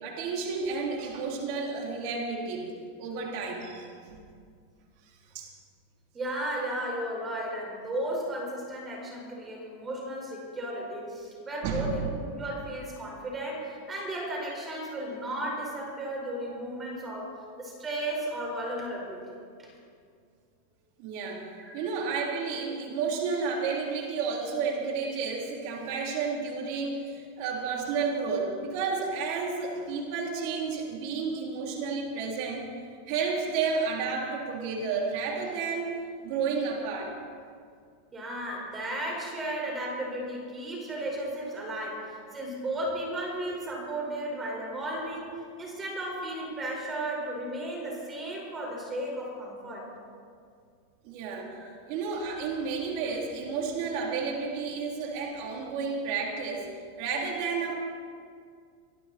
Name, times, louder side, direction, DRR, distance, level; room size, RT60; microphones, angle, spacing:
voice 1, 0.0-2.7 3.0-4.2 5.3-5.5 11.6-12.0 21.0-21.4 21.7-32.6 33.1-37.1 51.0-51.5 51.9-56.7 57.0-57.7, right 5 dB, 55° right, -1 dB, 3.2 m, -31 dB
voice 2, 6.1-19.2 19.6-19.7 21.6-21.7 38.1-45.3 45.6-49.9 51.5-51.7, right 1 dB, 20° right, -1 dB, 4.9 m, -34 dB
24.5 x 12.5 x 4.3 m, 2.2 s
hypercardioid pair, 125°, 0 cm